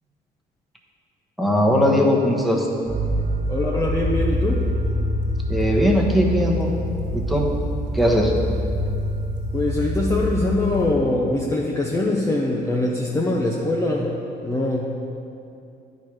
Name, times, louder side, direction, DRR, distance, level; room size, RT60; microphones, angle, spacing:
voice 1, 1.4-2.7 5.5-6.7 7.1-7.5 7.9-8.3, equal, ahead, -2 dB, 1.1 m, -19 dB
sound 1, 2.9-10.9, equal, 45° right, 1.2 m, -25 dB
voice 2, 3.5-4.6 9.5-14.1 14.4-14.8, left 2 dB, 15° left, -3 dB, 0.7 m, -23 dB
10.5 x 4.5 x 4.8 m, 2.6 s
cardioid pair, 110°, 17 cm